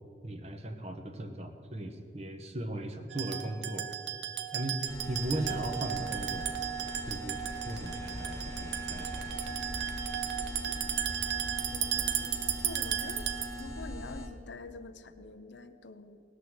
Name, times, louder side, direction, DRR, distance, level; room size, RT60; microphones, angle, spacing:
voice 1, 0.2-3.9 4.5-6.5 7.1-7.4 7.6-9.4, right 1 dB, 35° right, 6 dB, 1.3 m, -37 dB
sound 1, 3.1-13.7, right 10 dB, 85° right, 0.9 m, -35 dB
sound 2, 4.9-14.3, left 1 dB, 15° left, 1.1 m, -41 dB
voice 2, 11.7-16.2, left 3 dB, 80° left, 11 dB, 0.7 m, -47 dB
18.5 x 6.7 x 8.0 m, 2.5 s
head